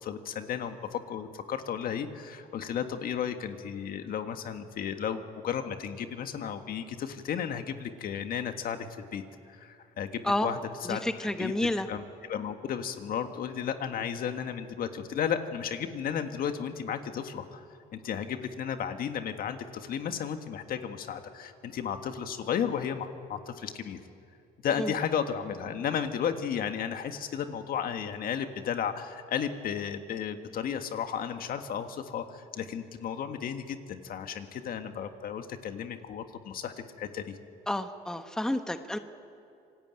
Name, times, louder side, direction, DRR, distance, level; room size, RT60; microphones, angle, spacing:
voice 1, 0.0-8.9 9.1-12.0 12.3-17.7 17.9-24.0 24.6-37.4, left 8 dB, 60° left, 7 dB, 1.8 m, -34 dB
voice 2, 10.9-11.9 24.8-24.9 37.7-39.0, left 1 dB, 5° left, 8 dB, 1.1 m, -30 dB
26.5 x 19.0 x 9.1 m, 2.5 s
cardioid pair, 110°, 17 cm